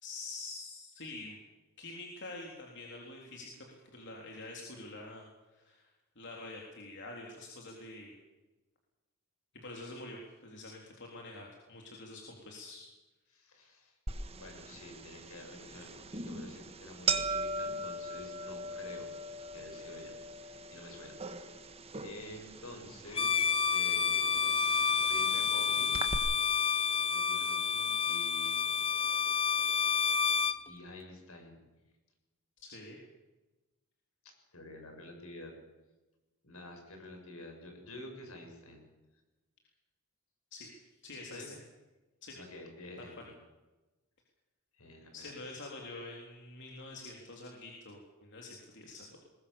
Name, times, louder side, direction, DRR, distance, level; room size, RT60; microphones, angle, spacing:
voice 1, 0.0-1.4 1.8-5.2 5.5-5.8 6.2-8.2 9.6-12.9 32.6-33.0 40.5-40.7 41.0-41.5 42.2-42.4 43.0-43.2 45.1-49.2, left 2 dB, 55° left, 0 dB, 3.7 m, -46 dB
voice 2, 13.3-14.0 14.3-19.1 19.5-20.1 20.4-21.7 22.0-24.6 24.9-26.0 27.1-28.9 29.3-29.9 30.7-31.6 32.7-32.8 34.5-35.5 36.4-38.8 41.3-41.5 42.3-43.4 44.8-45.3, left 1 dB, 75° left, 4 dB, 7.0 m, -49 dB
sound 1, 14.1-26.2, right 3 dB, 30° right, 1.5 m, -40 dB
Bowed string instrument, 23.1-30.6, left 6 dB, 25° left, 0.8 m, -29 dB
21.5 x 20.5 x 7.3 m, 1.1 s
head